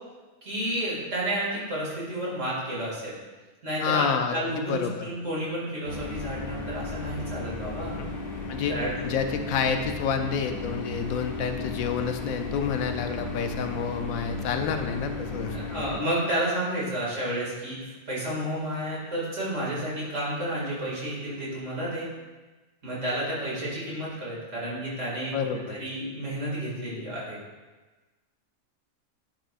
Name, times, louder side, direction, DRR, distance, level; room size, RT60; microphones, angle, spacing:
voice 1, 0.4-3.2 3.6-7.9 8.7-9.0 15.5-22.1 22.8-27.4, right 1 dB, 60° right, -7 dB, 2.5 m, -31 dB
voice 2, 3.8-4.4 4.6-4.9 8.5-8.7 9.0-15.8 25.3-25.8, left 6 dB, 80° left, 6 dB, 1.0 m, -29 dB
sound 1, 5.8-16.0, left 3 dB, 45° left, 1.0 m, -35 dB
10.0 x 4.7 x 2.4 m, 1.2 s
omnidirectional pair, 1.4 m